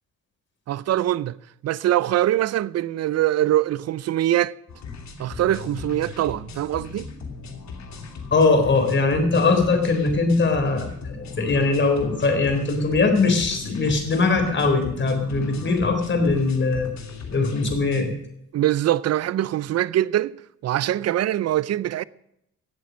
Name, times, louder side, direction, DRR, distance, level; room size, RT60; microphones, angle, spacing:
voice 1, 0.7-1.4 1.6-4.5 5.2-7.1 18.5-20.4 20.6-22.0, right 13 dB, 55° right, 0.6 m, -23 dB
sound 1, 4.7-18.0, left 4 dB, 65° left, 2.8 m, -38 dB
voice 2, 8.3-16.9 17.3-18.1, left 3 dB, 40° left, 3.7 m, -21 dB
16.0 x 8.3 x 6.3 m
cardioid pair, 90°, 30 cm